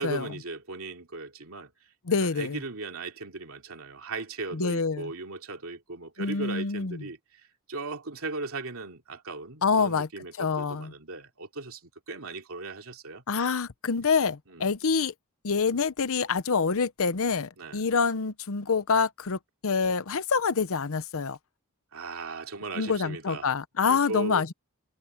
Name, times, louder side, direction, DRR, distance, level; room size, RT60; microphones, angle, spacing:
voice 1, 0.0-1.7 2.2-7.2 7.7-11.8 12.1-13.2 14.5-14.7 17.6-17.8 21.9-23.5 23.9-24.5, right 3 dB, 65° right, 3.0 m, -37 dB
voice 2, 2.1-2.6 4.5-5.1 6.2-7.1 9.6-10.1 10.4-10.9 13.3-15.1 15.4-21.4 22.8-24.5, left 5 dB, 65° left, 0.8 m, -26 dB
head